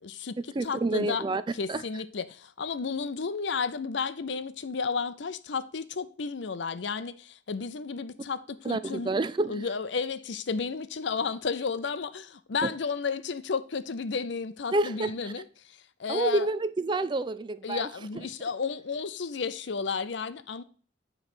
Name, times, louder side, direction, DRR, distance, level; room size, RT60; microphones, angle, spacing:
voice 1, 0.0-0.4 0.6-1.2 1.5-9.1 9.5-16.5 17.6-20.6, left 5 dB, 65° left, 0.6 m, -32 dB
voice 2, 0.5-1.4 1.7-1.8 8.6-9.7 12.6-12.7 14.7-15.3 16.1-17.9, right 2 dB, 25° right, 0.3 m, -28 dB
9.7 x 3.3 x 6.0 m
head